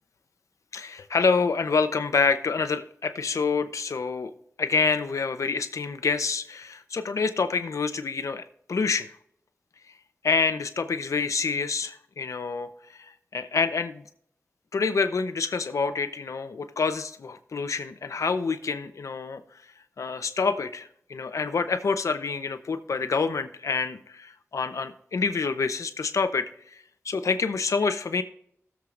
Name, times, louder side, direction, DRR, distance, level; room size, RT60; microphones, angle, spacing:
voice 1, 0.7-9.1 10.2-14.0 14.7-19.4 20.0-28.2, left 4 dB, 90° left, 10 dB, 0.8 m, -27 dB
19.0 x 7.5 x 2.6 m, 0.68 s
wide cardioid pair, 70°, 5 cm